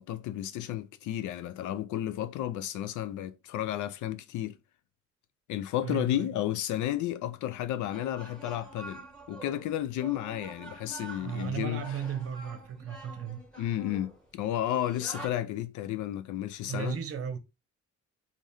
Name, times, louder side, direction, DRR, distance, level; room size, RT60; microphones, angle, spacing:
voice 1, 0.0-4.6 5.5-12.0 13.6-17.0, left 12 dB, 75° left, 0.5 m, -32 dB
voice 2, 5.8-6.3 11.2-13.4 16.7-17.4, right 7 dB, 50° right, 0.7 m, -35 dB
sound 1, 7.9-15.3, right 3 dB, ahead, 1.3 m, -47 dB
3.3 x 2.4 x 2.7 m
cardioid pair, 90°, 30 cm